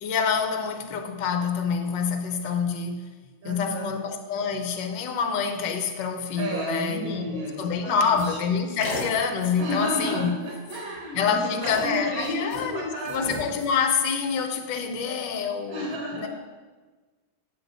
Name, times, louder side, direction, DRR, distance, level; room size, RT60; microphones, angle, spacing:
voice 1, 0.0-3.1 3.4-10.3 11.1-16.3, left 6 dB, 65° left, 5 dB, 1.4 m, -27 dB
voice 2, 3.4-3.9 6.4-8.1 9.6-13.3 15.7-16.3, equal, 85° right, -3 dB, 2.7 m, -32 dB
sound 1, 8.2-8.4 8.8-9.1 9.4-9.6 10.1-10.3 10.5-11.0 11.6-12.7 13.0-13.8, left 3 dB, 45° left, 1.5 m, -35 dB
9.4 x 7.3 x 4.0 m, 1.3 s
omnidirectional pair, 2.2 m